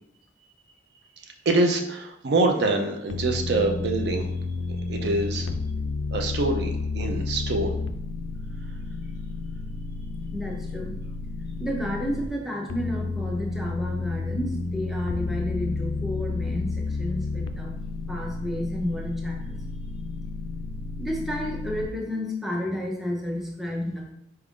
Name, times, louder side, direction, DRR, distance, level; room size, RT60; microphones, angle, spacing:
voice 1, 1.5-4.3 4.7-5.5 6.1-7.7, right 2 dB, 60° right, 4 dB, 0.4 m, -25 dB
sound 1, 3.1-12.3 12.7-21.9, left 3 dB, 75° left, 0.3 m, -31 dB
voice 2, 10.3-10.9 11.6-17.8 18.1-19.6 21.0-24.1, left 1 dB, ahead, -1 dB, 0.5 m, -31 dB
4.3 x 2.4 x 3.5 m, 0.79 s
head